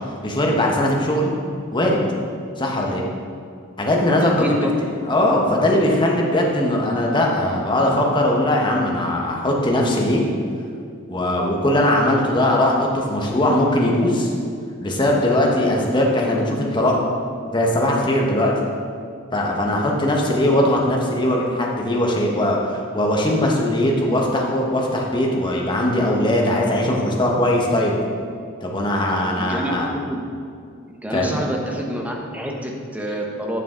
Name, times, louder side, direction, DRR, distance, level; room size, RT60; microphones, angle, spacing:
voice 1, 0.2-1.3 1.7-2.0 2.6-3.0 3.8-4.6 5.1-10.2 11.1-14.3 14.8-17.0 17.5-18.5 19.3-27.9 28.6-29.9 31.1-31.4, left 1 dB, 25° left, -1 dB, 1.2 m, -20 dB
voice 2, 4.1-4.7 29.3-30.2 30.9-33.6, right 1 dB, 10° right, 0 dB, 0.9 m, -27 dB
9.3 x 6.8 x 3.8 m, 2.3 s
head